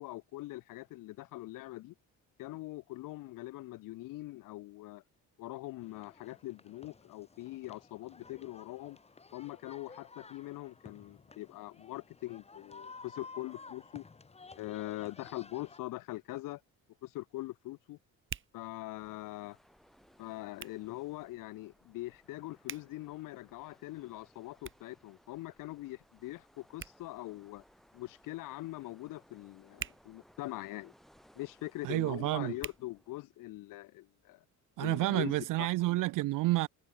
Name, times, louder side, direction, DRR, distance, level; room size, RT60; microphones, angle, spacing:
voice 1, 0.0-1.9 2.4-5.0 5.4-9.0 9.3-14.0 14.5-16.6 17.0-18.0 18.5-19.6 20.2-27.6 27.9-30.9 31.4-34.4 34.8-35.7, left 18 dB, 75° left, 0.7 m, -42 dB
sound 1, 5.8-15.8, left 4 dB, 20° left, 3.3 m, -54 dB
Hands, 16.0-33.7, right 8 dB, 35° right, 2.6 m, -52 dB
sound 2, 19.0-33.2, equal, ahead, 2.3 m, -64 dB
voice 2, 31.8-32.5 34.8-36.7, right 18 dB, 70° right, 0.6 m, -30 dB
cardioid pair, 155°, 33 cm